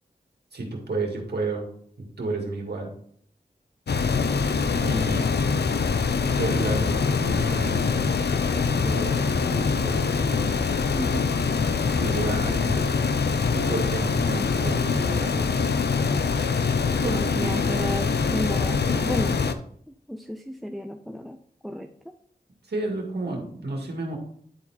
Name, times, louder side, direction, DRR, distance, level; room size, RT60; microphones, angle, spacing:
voice 1, 0.5-1.7 2.0-2.9 4.7-5.3 6.3-8.2 8.7-10.5 12.0-12.9 13.5-15.7 17.0-17.9 22.7-24.2, right 2 dB, 85° right, 0 dB, 2.0 m, -31 dB
sound 1, 3.9-19.5, left 5 dB, 80° left, 0.6 m, -24 dB
voice 2, 10.9-11.3 17.0-19.4 20.1-21.4 21.6-22.2, equal, ahead, 6 dB, 0.6 m, -32 dB
10.5 x 4.3 x 4.3 m, 0.63 s
wide cardioid pair, 50°, 17 cm